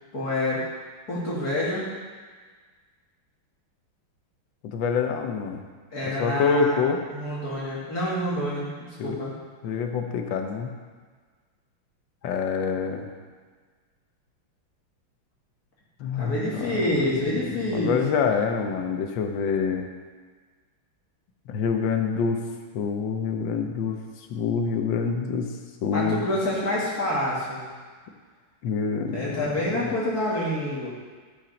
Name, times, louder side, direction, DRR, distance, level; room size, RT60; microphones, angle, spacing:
voice 1, 0.1-0.6 1.1-1.9 5.9-6.8 7.1-9.3 16.1-18.2 25.9-27.7 29.1-30.9, left 1 dB, 50° left, -6 dB, 2.3 m, -27 dB
voice 2, 4.6-5.6 6.2-7.0 9.0-9.1 9.6-10.7 12.2-13.1 16.0-16.7 17.7-19.9 21.5-22.4 22.7-24.0 24.3-25.5 25.8-26.2 28.6-29.4 29.8-29.9, left 5 dB, 70° left, 4 dB, 1.6 m, -26 dB
13.0 x 5.9 x 5.2 m, 1.5 s
omnidirectional pair, 2.3 m